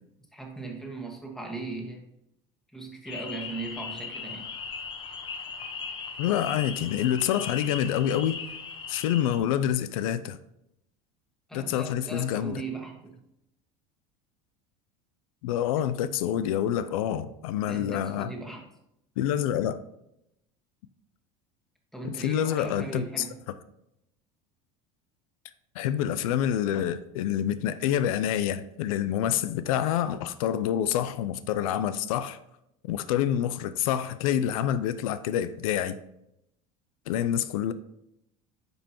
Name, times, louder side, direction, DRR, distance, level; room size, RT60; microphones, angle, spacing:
voice 1, 0.3-2.0 2.7-4.5 11.5-13.1 17.7-18.6 21.9-23.4, right 3 dB, 5° left, 1.6 m, -38 dB
sound 1, 3.1-9.4, left 5 dB, 30° left, 0.8 m, -38 dB
voice 2, 6.2-8.4 8.9-10.4 11.5-12.6 15.4-18.3 19.2-19.8 22.0-23.3 25.8-32.4 32.8-36.0 37.1-37.7, left 10 dB, 90° left, 0.5 m, -27 dB
10.0 x 5.3 x 3.0 m
supercardioid pair, 130°, 17 cm